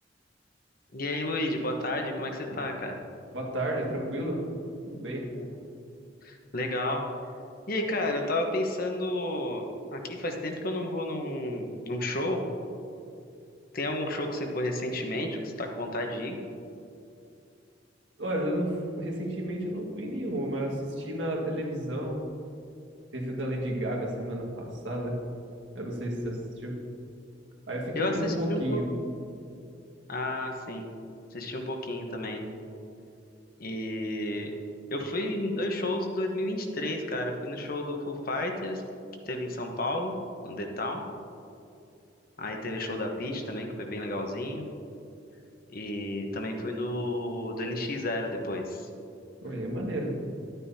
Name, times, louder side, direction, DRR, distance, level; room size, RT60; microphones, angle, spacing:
voice 1, 0.9-3.0 5.3-5.5 6.2-7.1 7.7-12.5 13.7-16.4 27.9-28.8 30.1-30.9 31.3-32.4 33.6-34.5 34.9-38.8 39.3-40.2 40.4-41.0 42.4-44.7 45.7-48.9, left 1 dB, 50° left, 3 dB, 1.1 m, -31 dB
voice 2, 3.3-4.4 4.8-5.3 18.2-22.2 23.1-25.2 25.8-26.8 27.7-28.8 49.4-50.2, right 1 dB, 75° right, -2 dB, 1.8 m, -32 dB
12.0 x 9.2 x 2.8 m, 2.6 s
head